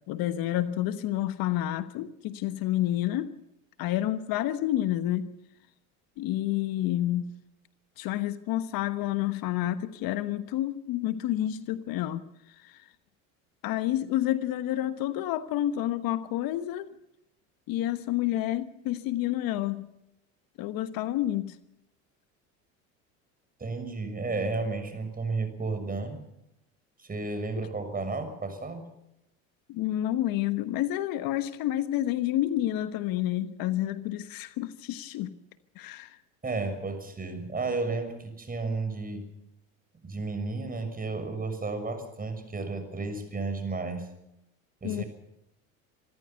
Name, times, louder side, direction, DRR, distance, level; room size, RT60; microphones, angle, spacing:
voice 1, 0.1-3.3 3.8-5.3 6.2-7.3 8.0-12.2 12.5-12.9 13.6-16.9 17.7-19.9 20.6-21.6 29.7-35.3 35.7-36.2 44.8-45.0, left 13 dB, 60° left, 1.2 m, -29 dB
voice 2, 23.6-26.2 27.0-28.9 36.4-39.3 40.0-44.1 44.8-45.1, right 3 dB, 20° right, 6.4 m, -32 dB
26.0 x 14.5 x 6.9 m
hypercardioid pair, 85°, 40 cm